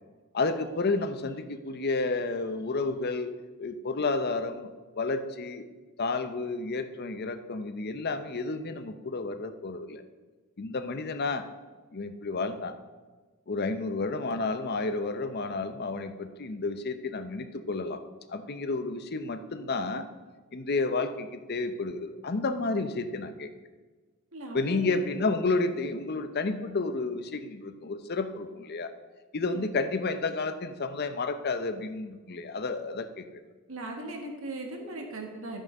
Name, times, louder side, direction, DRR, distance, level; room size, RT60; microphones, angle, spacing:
voice 1, 0.3-3.3 3.6-4.7 5.0-5.6 6.0-10.0 10.6-11.5 11.9-12.8 13.5-18.0 18.3-20.1 20.5-23.5 24.5-28.9 29.3-33.4, left 3 dB, 45° left, 10 dB, 0.6 m, -31 dB
voice 2, 24.3-25.0 29.5-29.6 33.7-35.6, right 2 dB, 70° right, 2 dB, 1.8 m, -38 dB
11.5 x 6.3 x 5.2 m, 1.3 s
head